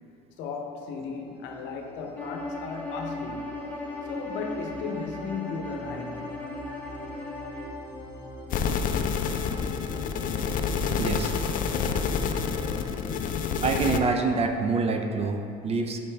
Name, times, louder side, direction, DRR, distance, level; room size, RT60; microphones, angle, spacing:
voice 1, 0.4-3.6 4.0-6.3, left 5 dB, 65° left, 3 dB, 0.7 m, -36 dB
sound 1, 0.8-13.3, right 1 dB, 10° right, 1.2 m, -44 dB
Bowed string instrument, 2.2-7.8, left 1 dB, 5° left, 0.8 m, -37 dB
sound 2, 8.5-14.0, left 6 dB, 45° left, 0.4 m, -28 dB
voice 2, 11.0-11.3 13.6-16.0, right 4 dB, 30° right, 5 dB, 0.4 m, -26 dB
5.4 x 5.2 x 3.3 m, 2.5 s
cardioid pair, 120°, 20 cm